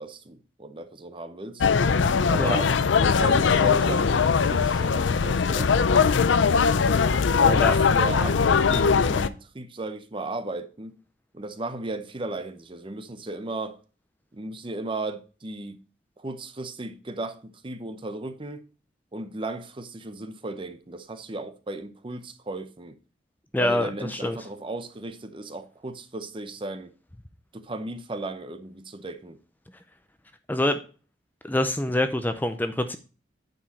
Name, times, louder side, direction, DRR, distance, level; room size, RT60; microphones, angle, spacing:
voice 1, 0.0-1.7 2.3-2.7 3.0-5.7 7.4-11.0 11.3-13.8 14.3-15.8 16.2-18.6 19.1-23.0 23.6-26.9 27.5-29.4, right 2 dB, 30° right, 0.7 m, -35 dB
sound 1, 1.6-9.3, left 5 dB, 85° left, 0.5 m, -21 dB
voice 2, 23.5-24.4 30.5-30.8 31.4-33.0, left 1 dB, 10° left, 0.5 m, -25 dB
9.0 x 4.9 x 4.1 m
head